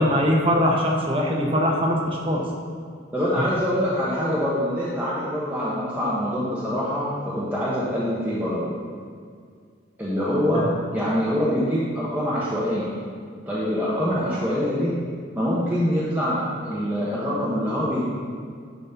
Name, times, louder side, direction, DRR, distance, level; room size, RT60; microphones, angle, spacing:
voice 1, 0.0-2.4 3.3-3.6 10.5-10.7, equal, 30° right, -1 dB, 0.9 m, -22 dB
voice 2, 3.1-8.7 10.0-12.9 13.5-14.9 15.3-18.1, equal, 10° right, -9 dB, 1.2 m, -24 dB
11.0 x 4.2 x 5.7 m, 2.1 s
head